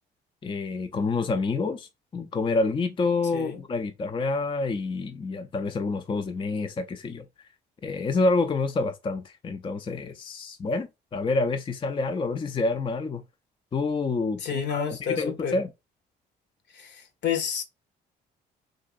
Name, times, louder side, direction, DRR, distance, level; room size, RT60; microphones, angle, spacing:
voice 1, 0.4-7.3 7.8-13.2 13.7-14.8 15.1-15.7, left 3 dB, 25° left, 0.4 m, -28 dB
voice 2, 3.3-3.6 14.4-15.6 16.7-17.6, left 7 dB, 60° left, 0.9 m, -30 dB
3.7 x 2.4 x 2.4 m
supercardioid pair, 65°, 20 cm